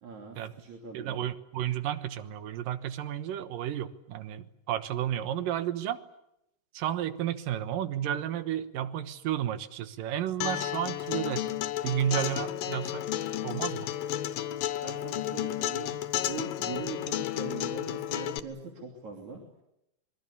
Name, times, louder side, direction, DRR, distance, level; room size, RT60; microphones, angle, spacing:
voice 1, 0.0-1.2 14.8-16.0 16.3-19.4, right 4 dB, 55° right, 1 dB, 4.3 m, -41 dB
voice 2, 0.9-6.0 6.7-11.5 11.8-13.0 13.4-13.9, right 11 dB, 75° right, 12 dB, 2.8 m, -32 dB
Acoustic guitar, 10.4-18.4, left 12 dB, 75° left, 2.7 m, -32 dB
26.5 x 22.0 x 8.5 m, 0.84 s
omnidirectional pair, 4.1 m